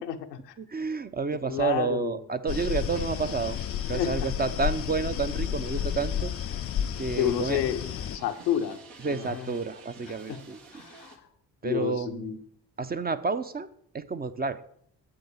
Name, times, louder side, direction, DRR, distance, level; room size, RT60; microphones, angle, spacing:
voice 1, 0.0-0.5 1.5-2.1 3.9-4.3 7.2-7.8 8.1-8.8 9.0-9.5 10.3-10.4 10.7-11.2 11.6-12.4, left 10 dB, 85° left, 7 dB, 0.7 m, -30 dB
voice 2, 0.6-3.6 3.9-6.3 7.0-7.6 9.0-10.6 11.6-12.4 12.8-13.7 13.9-14.6, right 4 dB, 20° right, 10 dB, 0.5 m, -30 dB
sound 1, 2.5-8.2, left 10 dB, 30° left, 0.4 m, -31 dB
sound 2, 2.5-11.2, right 3 dB, 70° right, 1.6 m, -50 dB
7.8 x 5.3 x 7.0 m, 0.65 s
figure-of-eight pair, 40°, 47 cm